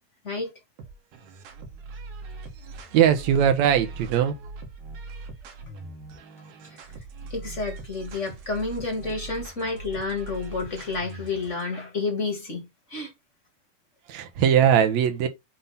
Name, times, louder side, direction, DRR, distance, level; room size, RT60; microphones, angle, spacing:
sound 1, 0.8-11.6, right 3 dB, 90° right, 2.9 m, -41 dB
voice 1, 2.9-4.4 14.1-15.3, right 9 dB, 70° right, 2.2 m, -20 dB
voice 2, 7.3-13.1, left 3 dB, 30° left, 1.4 m, -30 dB
7.9 x 2.9 x 5.4 m
omnidirectional pair, 3.5 m